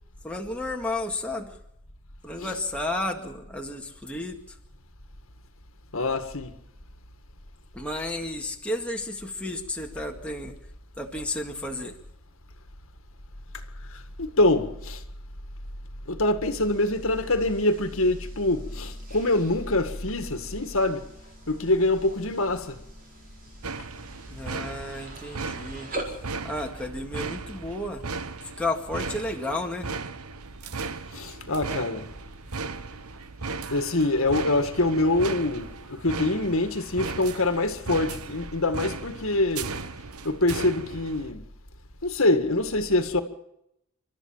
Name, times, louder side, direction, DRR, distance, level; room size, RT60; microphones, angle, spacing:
voice 1, 0.2-1.6 2.2-4.6 7.7-10.6 11.0-11.9 24.3-25.9 26.4-28.0 28.6-29.9, left 2 dB, 5° left, 2.0 m, -32 dB
voice 2, 5.9-6.5 13.9-15.0 16.1-21.1 21.5-22.8 31.1-32.1 33.7-39.7 40.2-41.4 42.0-43.2, left 2 dB, 65° left, 1.9 m, -25 dB
sound 1, 16.5-26.3, right 1 dB, 40° right, 4.5 m, -44 dB
sound 2, 23.6-41.3, right 4 dB, 80° right, 1.1 m, -37 dB
29.5 x 13.0 x 7.4 m
head